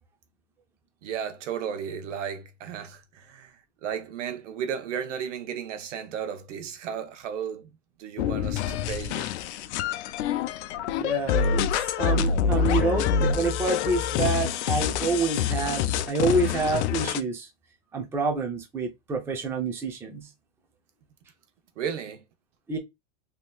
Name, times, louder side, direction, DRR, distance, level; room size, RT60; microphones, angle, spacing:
voice 1, 1.0-3.6 3.8-7.7 8.0-9.3 21.8-22.2, right 8 dB, 80° right, 0.9 m, -34 dB
sound 1, 8.2-17.2, left 7 dB, 70° left, 0.5 m, -26 dB
voice 2, 11.0-11.7 12.0-17.5 17.9-20.3 22.7-22.8, right 3 dB, 5° right, 0.5 m, -28 dB
3.5 x 2.8 x 2.3 m
supercardioid pair, 140°, 36 cm